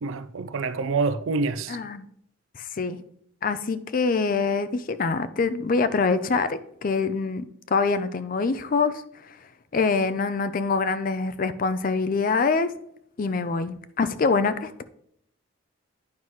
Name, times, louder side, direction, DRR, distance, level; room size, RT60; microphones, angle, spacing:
voice 1, 0.0-1.8, right 4 dB, 75° right, 0.4 m, -27 dB
voice 2, 1.7-2.1 2.6-3.0 3.4-7.4 7.7-9.0 9.7-12.7 13.2-14.8, left 4 dB, 40° left, 0.4 m, -25 dB
9.4 x 5.6 x 3.1 m
head